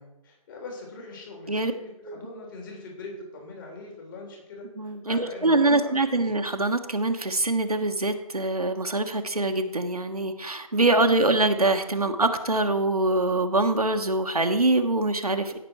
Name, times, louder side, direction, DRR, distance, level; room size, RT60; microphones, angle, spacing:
voice 1, 0.0-6.2, left 2 dB, 35° left, 0 dB, 3.4 m, -42 dB
voice 2, 4.8-15.6, right 2 dB, 85° right, 6 dB, 1.2 m, -24 dB
16.5 x 6.2 x 4.6 m, 0.92 s
figure-of-eight pair, 140°, 19 cm